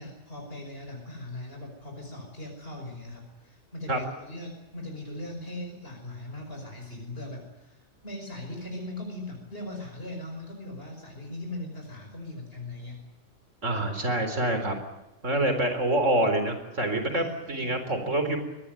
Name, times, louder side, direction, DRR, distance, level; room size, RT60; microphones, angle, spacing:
voice 1, 0.0-13.1 17.1-17.7, left 1 dB, 50° left, 1 dB, 5.7 m, -39 dB
voice 2, 13.6-14.7 15.2-18.4, right 1 dB, 80° right, 7 dB, 4.4 m, -26 dB
23.0 x 19.0 x 9.1 m, 1.0 s
omnidirectional pair, 1.3 m